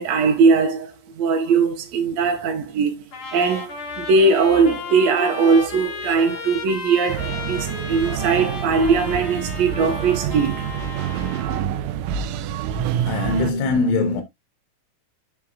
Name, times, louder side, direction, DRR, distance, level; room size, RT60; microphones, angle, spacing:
voice 1, 0.0-2.9 3.3-3.7 4.0-10.7 12.7-13.3, right 4 dB, 70° right, 1.7 m, -20 dB
Trumpet, 3.1-11.7, left 4 dB, 55° left, 1.6 m, -34 dB
sound 1, 7.1-13.5, right 9 dB, 90° right, 1.9 m, -28 dB
voice 2, 13.0-14.2, left 3 dB, 75° left, 2.3 m, -21 dB
8.2 x 5.8 x 2.3 m
omnidirectional pair, 4.5 m